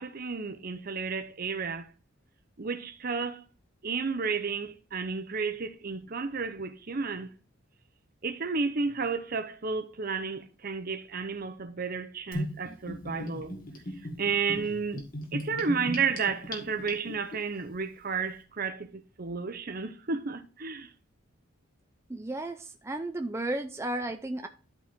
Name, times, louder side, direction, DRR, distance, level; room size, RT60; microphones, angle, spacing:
voice 1, 0.0-1.9 2.6-3.4 3.8-7.3 8.2-13.6 14.2-15.1 15.3-20.9, right 5 dB, 45° right, 0.8 m, -32 dB
Gurgling / Bathtub (filling or washing), 12.3-17.4, left 1 dB, 45° left, 2.1 m, -37 dB
voice 2, 22.1-24.5, right 1 dB, 15° right, 0.4 m, -33 dB
12.0 x 4.5 x 3.6 m
head